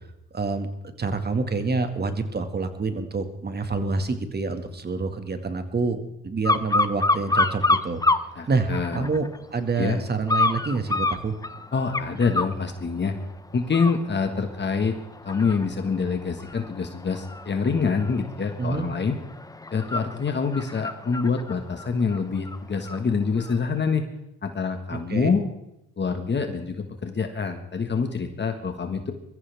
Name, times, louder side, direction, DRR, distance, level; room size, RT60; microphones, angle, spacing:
voice 1, 0.3-0.7 1.0-8.0 8.5-11.4 18.6-18.9 24.9-25.4, right 4 dB, 35° right, 7 dB, 2.1 m, -27 dB
sound 1, 6.4-8.3 8.7-9.4 10.3-12.6 13.1-13.3 13.6-23.0 23.4-23.5, left 2 dB, 10° left, 0.8 m, -27 dB
voice 2, 8.4-9.1 9.8-10.0 11.7-13.2 13.5-15.0 15.2-19.2 19.7-24.0 24.4-25.4 26.0-29.1, left 5 dB, 35° left, 5 dB, 1.7 m, -26 dB
23.0 x 14.5 x 3.6 m, 0.86 s
cardioid pair, 90°, 30 cm